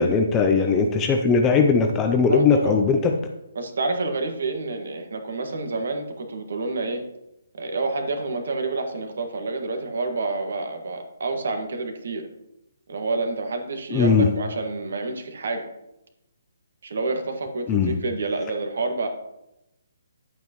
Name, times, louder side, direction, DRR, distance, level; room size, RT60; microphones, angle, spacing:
voice 1, 0.0-3.1 13.9-14.3 17.7-17.9, left 5 dB, 10° left, 4 dB, 0.4 m, -19 dB
voice 2, 2.3-2.8 3.6-7.0 7.5-12.2 12.9-15.6 16.8-19.1, right 3 dB, 50° right, 5 dB, 1.8 m, -28 dB
11.0 x 8.5 x 3.1 m, 0.88 s
hypercardioid pair, 180°, 0 cm